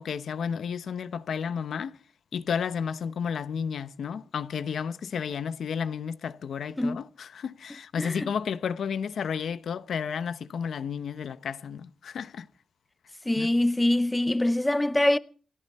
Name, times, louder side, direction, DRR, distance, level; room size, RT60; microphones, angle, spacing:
voice 1, 0.0-2.0 2.3-12.5 13.4-13.5, left 7 dB, 90° left, 0.8 m, -32 dB
voice 2, 8.0-8.3 13.3-15.2, left 1 dB, 15° left, 0.7 m, -24 dB
29.0 x 11.0 x 4.3 m
wide cardioid pair, 95°, 0 cm